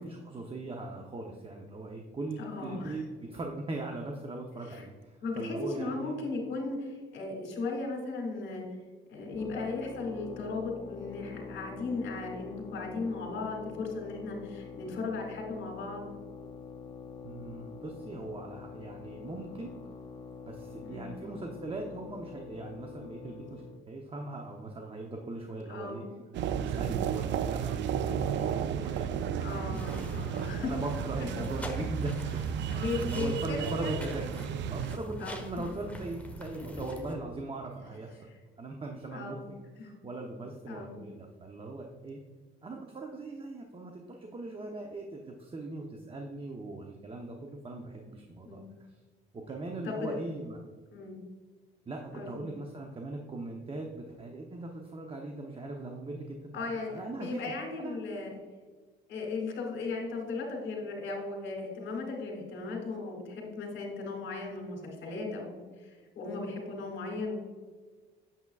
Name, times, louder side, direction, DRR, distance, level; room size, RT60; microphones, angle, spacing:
voice 1, 0.0-6.1 17.2-19.7 20.5-26.0 26.5-34.3 34.7-38.2 38.6-42.2 42.6-48.6 49.3-50.6 51.9-58.0, right 2 dB, 25° right, 2 dB, 0.8 m, -40 dB
voice 2, 2.4-3.0 4.7-4.8 5.2-8.6 9.1-16.0 20.8-21.0 25.7-26.3 29.4-30.7 32.7-34.0 35.2-35.7 38.3-38.4 39.1-39.4 39.8-39.9 40.7-40.9 48.4-48.7 49.8-50.1 50.9-51.2 52.1-52.3 56.5-58.3 59.1-67.4, left 3 dB, 70° left, -2 dB, 2.1 m, -36 dB
sound 1, 9.3-23.8, left 5 dB, 25° left, 0.5 m, -45 dB
sound 2, 26.3-35.0, right 8 dB, 60° right, 0.4 m, -33 dB
sound 3, 29.7-37.1, left 1 dB, 5° left, 1.1 m, -43 dB
8.3 x 7.2 x 2.4 m, 1.4 s
cardioid pair, 90°, 21 cm